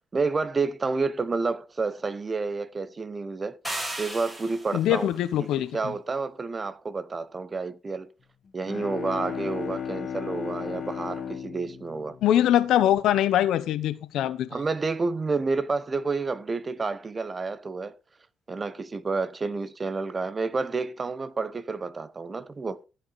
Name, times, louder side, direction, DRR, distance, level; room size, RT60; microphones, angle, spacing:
voice 1, 0.1-3.6 4.0-5.1 5.4-8.1 8.5-12.2 14.5-18.0 18.5-22.8, right 4 dB, 30° right, 0.8 m, -30 dB
sound 1, 3.6-4.9, right 1 dB, 15° right, 4.8 m, -34 dB
voice 2, 4.7-5.9 12.2-14.5, left 12 dB, 80° left, 0.8 m, -23 dB
Bowed string instrument, 8.5-13.2, left 7 dB, 50° left, 1.6 m, -35 dB
15.0 x 5.8 x 4.0 m
cardioid pair, 90°, 0 cm